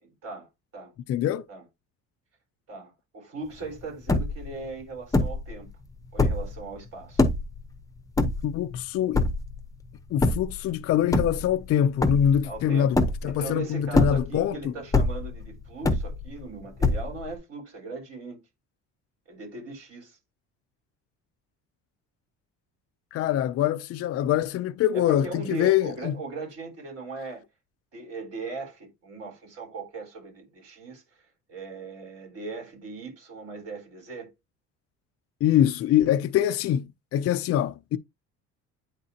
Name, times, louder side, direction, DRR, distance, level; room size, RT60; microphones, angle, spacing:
voice 1, 0.0-0.9 1.5-1.6 2.7-5.7 6.1-7.2 12.4-13.0 13.2-18.4 19.3-20.2 24.9-27.4 27.9-34.3, right 3 dB, 50° right, 4.5 m, -39 dB
voice 2, 1.1-1.4 8.2-9.2 10.1-13.0 13.2-14.7 23.1-26.1 35.4-38.0, left 10 dB, 50° left, 0.5 m, -24 dB
sound 1, 3.6-3.7 3.9-4.5 5.1-5.5 6.0-6.6 7.2-7.6 8.2-8.8 9.1-9.6 10.2-10.6 11.0-11.7 12.0-12.5 13.0-13.5 13.9-14.5 14.9-15.4 15.8-16.4 16.8-17.3, left 2 dB, 10° left, 0.8 m, -23 dB
9.4 x 3.6 x 2.8 m
cardioid pair, 120°, 30 cm